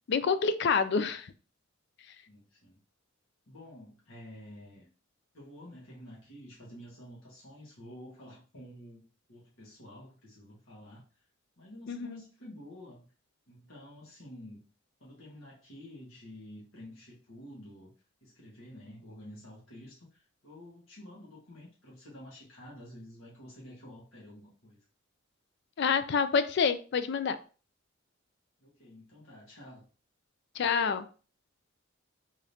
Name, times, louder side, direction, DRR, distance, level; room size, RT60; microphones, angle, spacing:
voice 1, 0.1-1.3 11.9-12.2 25.8-27.4 30.6-31.1, left 5 dB, 55° left, 0.4 m, -27 dB
voice 2, 2.3-2.8 3.5-4.9 5.3-11.0 11.6-13.1 13.5-14.6 15.0-17.9 18.2-24.8 28.6-29.8, left 1 dB, 75° left, 1.6 m, -50 dB
3.6 x 3.4 x 2.7 m
head